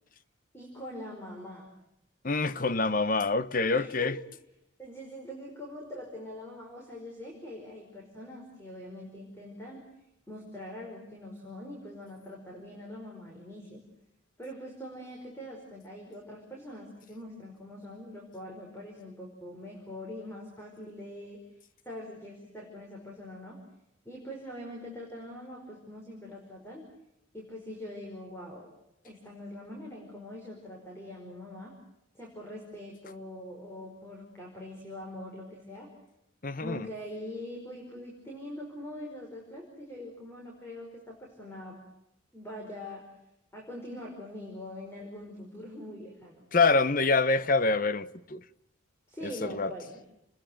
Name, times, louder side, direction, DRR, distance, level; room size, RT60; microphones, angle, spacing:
voice 1, 0.5-1.7 3.7-4.2 4.8-9.8 10.3-13.8 14.4-21.4 21.8-23.6 24.0-26.8 27.3-28.7 29.0-31.8 32.1-35.9 36.6-41.8 42.3-43.0 43.5-46.4 49.1-50.0, left 1 dB, 15° left, 5.0 m, -43 dB
voice 2, 2.2-4.2 36.4-36.9 46.5-48.4 49.2-49.7, left 3 dB, 45° left, 0.9 m, -26 dB
30.0 x 21.0 x 7.8 m
head